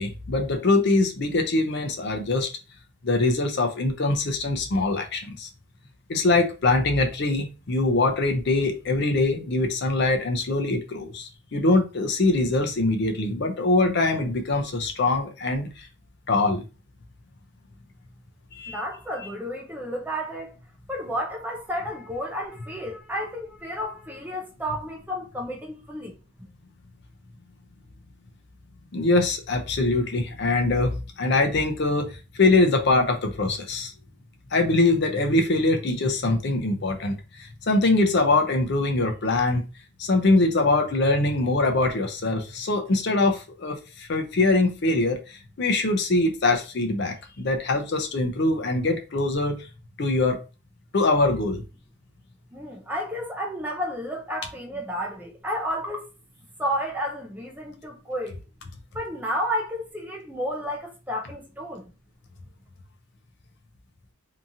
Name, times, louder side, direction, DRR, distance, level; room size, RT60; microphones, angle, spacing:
voice 1, 0.0-2.5 3.0-5.5 6.1-15.9 16.3-16.6 18.5-18.8 19.2-19.3 28.9-33.9 34.5-39.6 40.0-49.7 50.0-50.4 50.9-51.6, left 2 dB, 50° left, 0.5 m, -23 dB
voice 2, 18.7-20.5 20.9-26.2 52.5-56.1 56.6-58.4 58.9-61.9, equal, 10° right, 0.4 m, -31 dB
2.8 x 2.5 x 2.6 m
head